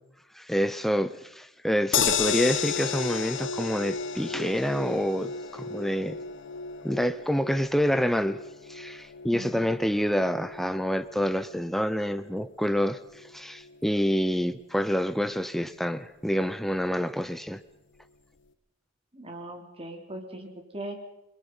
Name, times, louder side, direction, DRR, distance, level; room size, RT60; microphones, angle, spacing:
voice 1, 0.3-6.2 6.8-8.4 8.7-17.6, equal, ahead, 11 dB, 0.7 m, -27 dB
sound 1, 1.9-14.2 14.5-14.6 14.9-15.0, left 6 dB, 65° left, 1.4 m, -34 dB
voice 2, 9.3-9.8 19.1-20.5 20.7-21.0, right 1 dB, 30° right, 3 dB, 3.7 m, -39 dB
29.5 x 21.5 x 5.6 m, 0.89 s
head